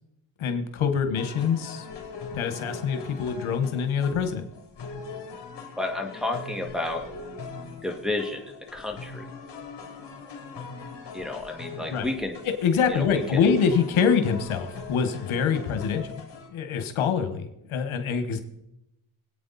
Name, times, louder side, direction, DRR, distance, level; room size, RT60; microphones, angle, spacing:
voice 1, 0.4-1.8 2.3-4.5 11.9-12.1 12.4-16.0 16.5-18.4, left 6 dB, 85° left, 7 dB, 1.6 m, -25 dB
sound 1, 1.2-16.5, left 4 dB, 60° left, 3.6 m, -41 dB
voice 2, 5.8-7.0 7.8-9.2 11.1-12.4 12.9-13.2, left 2 dB, ahead, 0 dB, 2.1 m, -31 dB
23.5 x 8.8 x 4.2 m, 0.86 s
cardioid pair, 100°, 48 cm